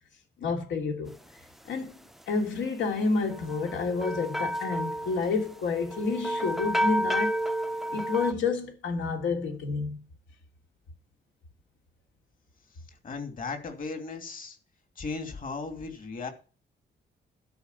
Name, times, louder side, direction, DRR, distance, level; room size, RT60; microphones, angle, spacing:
voice 1, 0.4-1.1 1.7-1.9 2.3-7.4 7.9-10.0, left 4 dB, 85° left, 3.1 m, -29 dB
sound 1, 3.3-8.3, right 1 dB, ahead, 0.5 m, -31 dB
voice 2, 13.0-14.6 15.0-16.3, left 4 dB, 50° left, 3.0 m, -36 dB
13.0 x 5.0 x 8.4 m
cardioid pair, 135°, 19 cm